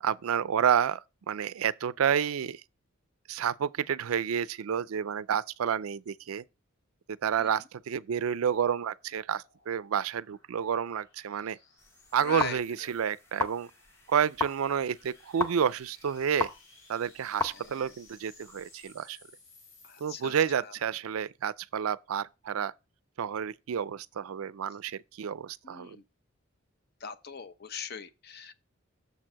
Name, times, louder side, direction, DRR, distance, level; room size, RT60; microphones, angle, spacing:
voice 1, 0.0-2.6 3.3-6.4 7.2-11.6 12.1-13.7 14.1-16.5 16.9-19.2 20.0-22.7 23.2-26.0, right 8 dB, 90° right, 0.4 m, -30 dB
sound 1, 8.8-20.8, left 3 dB, 75° left, 4.3 m, -60 dB
sound 2, 11.8-19.0, left 2 dB, 10° left, 0.7 m, -38 dB
voice 2, 12.2-12.6 17.5-17.9 19.8-20.3 20.6-20.7 25.6-26.0 27.0-28.5, left 5 dB, 50° left, 0.7 m, -40 dB
6.9 x 4.5 x 6.1 m
head